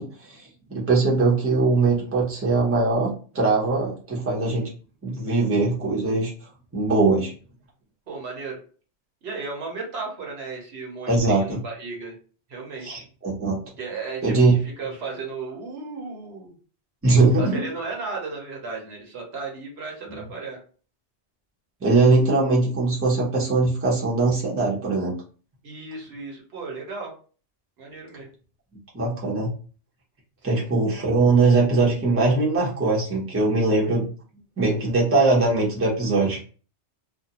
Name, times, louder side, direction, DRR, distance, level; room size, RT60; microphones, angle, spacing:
voice 1, 0.0-4.7 5.0-6.3 6.7-7.3 11.1-11.6 12.8-13.6 14.2-14.5 17.0-17.7 21.8-25.2 28.9-29.5 30.4-34.1 34.6-36.4, right 3 dB, 15° right, -4 dB, 0.7 m, -21 dB
voice 2, 8.1-8.6 9.2-12.1 12.5-13.0 13.8-14.3 14.6-16.5 17.4-20.6 25.6-27.1 27.8-28.3 30.4-30.6, right 4 dB, 70° right, 0 dB, 1.0 m, -35 dB
2.5 x 2.2 x 2.8 m, 0.39 s
omnidirectional pair, 1.2 m